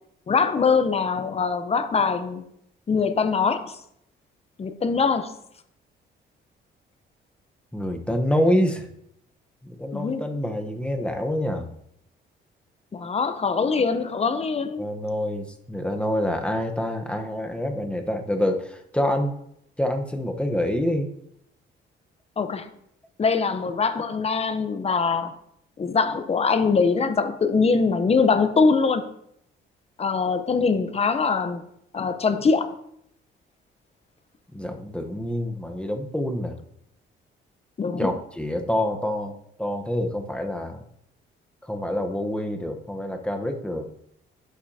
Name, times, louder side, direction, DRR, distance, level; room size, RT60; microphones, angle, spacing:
voice 1, 0.3-2.4 2.9-3.8 4.6-5.3 9.9-10.2 12.9-14.8 22.4-22.7 23.2-25.3 25.8-29.0 30.0-31.6 31.9-32.7 37.8-38.1, left 5 dB, 30° left, 10 dB, 0.7 m, -23 dB
voice 2, 7.7-8.9 9.6-11.7 13.0-13.1 14.8-19.3 19.8-21.1 34.5-36.5 38.0-40.8 41.6-43.9, left 1 dB, 5° left, 4 dB, 1.0 m, -26 dB
11.0 x 5.7 x 2.8 m, 0.74 s
cardioid pair, 90°, 20 cm